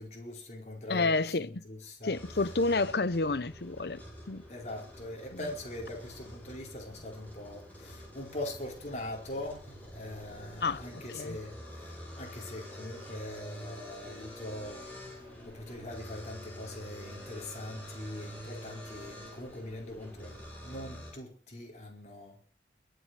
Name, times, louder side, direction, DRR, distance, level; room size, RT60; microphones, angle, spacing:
voice 1, 0.0-2.1 4.5-14.8 15.4-22.5, left 1 dB, 40° left, 4.5 m, -42 dB
voice 2, 0.9-1.6 2.0-4.0 4.3-4.4 5.3-5.4 10.6-10.8 11.1-11.4, left 3 dB, 60° left, 0.8 m, -29 dB
sound 1, 2.1-21.1, equal, 10° left, 6.9 m, -46 dB
22.5 x 8.0 x 6.5 m
head